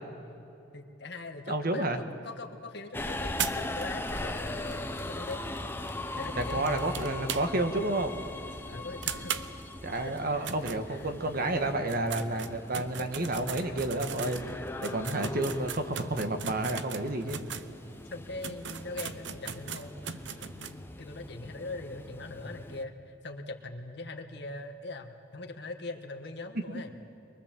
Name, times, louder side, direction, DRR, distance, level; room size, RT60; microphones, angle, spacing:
voice 1, 0.7-1.9 2.2-5.4 6.1-7.5 8.7-9.4 9.9-11.1 13.6-13.8 14.9-15.2 18.1-26.9, left 2 dB, 60° left, 4 dB, 1.6 m, -42 dB
voice 2, 1.5-2.0 6.4-8.1 9.8-17.4 26.5-26.6, right 2 dB, 50° right, 7 dB, 1.5 m, -30 dB
Subway metro underground, 2.9-22.8, left 2 dB, 10° left, 0.8 m, -40 dB
sound 1, 3.4-7.8 8.1-8.2 8.5-8.6 9.0-11.4 11.8-17.7 18.1-18.2 18.4-20.8, right 8 dB, 65° right, 0.8 m, -39 dB
23.5 x 22.5 x 7.6 m, 2.9 s
head